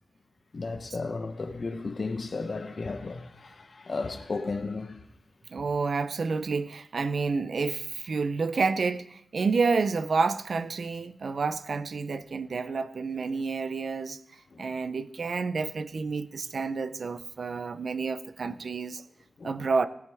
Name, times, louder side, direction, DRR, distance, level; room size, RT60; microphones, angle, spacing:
voice 1, 0.5-5.0 14.5-14.6 19.4-19.5, left 3 dB, 45° left, 0.8 m, -34 dB
voice 2, 5.5-14.2 14.6-19.0 19.4-19.9, right 4 dB, 60° right, 0.5 m, -29 dB
17.0 x 10.0 x 3.4 m
wide cardioid pair, 170°, 0 cm